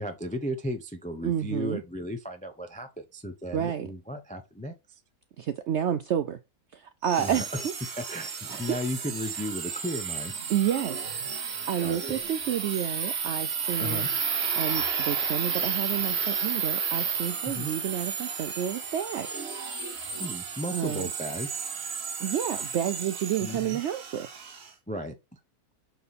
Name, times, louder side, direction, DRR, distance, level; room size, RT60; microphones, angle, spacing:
voice 1, 0.0-4.7 7.2-7.6 8.0-10.3 11.8-12.0 13.8-14.1 17.5-17.7 20.2-21.6 23.4-23.8 24.9-25.4, left 1 dB, 10° left, 0.5 m, -35 dB
voice 2, 1.2-1.8 3.5-3.9 5.4-6.4 6.7-7.7 8.5-8.8 10.5-11.1 11.7-14.1 14.5-19.3 20.7-21.1 22.2-24.3, right 9 dB, 70° right, 0.7 m, -30 dB
sound 1, 7.0-24.7, right 6 dB, 50° right, 1.1 m, -32 dB
6.9 x 3.8 x 4.1 m
omnidirectional pair, 1.6 m